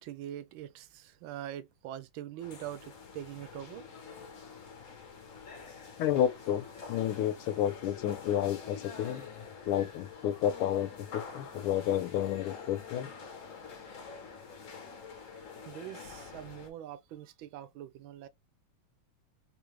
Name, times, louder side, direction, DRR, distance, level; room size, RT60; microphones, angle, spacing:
voice 1, 0.0-3.8 15.3-18.3, right 11 dB, 75° right, 1.3 m, -43 dB
sound 1, 2.4-16.7, left 5 dB, 50° left, 1.0 m, -47 dB
voice 2, 6.0-9.3 9.7-13.1, left 10 dB, 85° left, 1.5 m, -31 dB
3.7 x 3.1 x 3.1 m
omnidirectional pair, 2.4 m